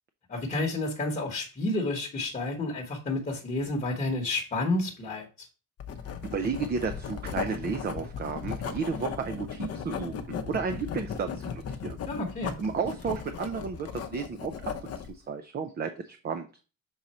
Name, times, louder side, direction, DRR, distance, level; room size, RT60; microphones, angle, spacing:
voice 1, 0.3-5.5 12.1-12.5, left 2 dB, 25° left, 1.2 m, -30 dB
Writing, 5.8-15.1, left 7 dB, 45° left, 0.7 m, -36 dB
voice 2, 6.3-12.0 12.6-16.5, right 5 dB, 30° right, 0.5 m, -33 dB
6.3 x 3.9 x 4.2 m
cardioid pair, 175°, 34 cm